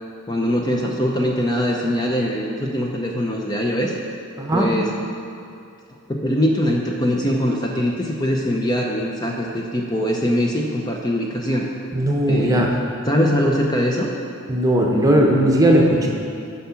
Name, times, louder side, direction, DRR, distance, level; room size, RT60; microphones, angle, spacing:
voice 1, 0.3-3.9 4.5-4.9 6.1-11.7 12.3-12.7 13.1-14.1, equal, 20° left, -1 dB, 0.6 m, -22 dB
voice 2, 4.4-4.7 11.9-12.7 14.5-16.1, right 1 dB, 15° right, 0 dB, 0.8 m, -17 dB
9.9 x 5.6 x 5.7 m, 2.5 s
head